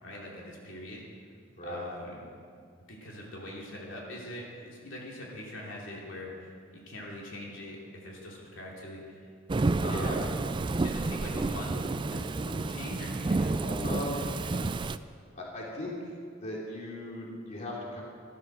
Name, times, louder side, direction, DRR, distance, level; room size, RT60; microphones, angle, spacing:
voice 1, 0.0-1.0 1.6-2.2 2.9-9.3 9.8-10.3 10.8-14.4, left 1 dB, 80° left, -3 dB, 3.0 m, -42 dB
Thunderstorm / Rain, 9.5-15.0, right 3 dB, 25° right, 0.4 m, -30 dB
voice 2, 9.8-10.3 13.8-14.2 15.3-16.1 16.4-18.0, left 1 dB, 35° left, -4 dB, 3.0 m, -38 dB
14.5 x 12.5 x 6.3 m, 2.2 s
head